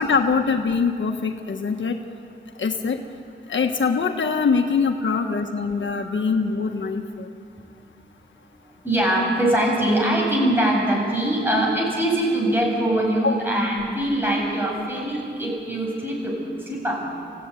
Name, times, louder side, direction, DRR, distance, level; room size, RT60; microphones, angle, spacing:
voice 1, 0.0-2.0 2.6-3.0 3.5-7.3 13.2-13.4, left 5 dB, 75° left, 5 dB, 1.4 m, -23 dB
voice 2, 5.9-6.2 8.8-16.4 16.7-17.3, right 1 dB, 10° right, -2 dB, 7.6 m, -23 dB
28.0 x 16.0 x 9.7 m, 2.4 s
wide cardioid pair, 150°, 20 cm